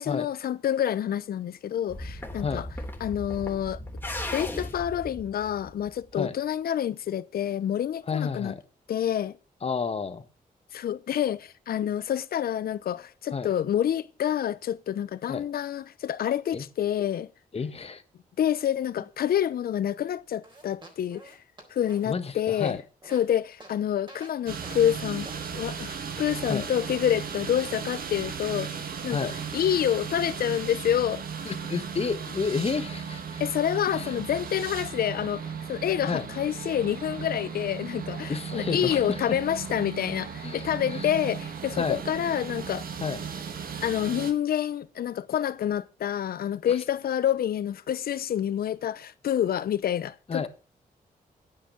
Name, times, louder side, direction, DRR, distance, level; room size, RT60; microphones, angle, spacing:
voice 1, 0.0-2.7 3.0-8.5 8.9-9.3 10.7-17.3 18.4-21.4 21.7-22.8 23.1-25.3 25.5-28.7 29.0-31.2 33.4-42.9 43.8-50.5, left 10 dB, 75° left, 0.8 m, -28 dB
sound 1, 1.9-6.1, left 1 dB, 15° left, 3.2 m, -37 dB
voice 2, 8.1-8.6 9.6-10.2 13.3-13.5 15.3-15.4 16.5-16.6 17.5-18.0 22.1-22.8 26.4-26.6 29.1-29.3 31.4-33.4 33.9-34.1 36.1-36.2 38.3-39.2 40.4-41.1 41.8-42.0 43.0-43.2 46.7-46.8 50.3-50.5, left 5 dB, 40° left, 1.4 m, -31 dB
sound 2, 20.4-23.3 23.6-23.8 24.1-24.3 24.6-25.0 25.3-25.4, right 1 dB, 30° right, 3.9 m, -48 dB
sound 3, 24.5-44.3, right 6 dB, 70° right, 1.7 m, -36 dB
9.9 x 9.1 x 6.9 m
cardioid pair, 95°, 15 cm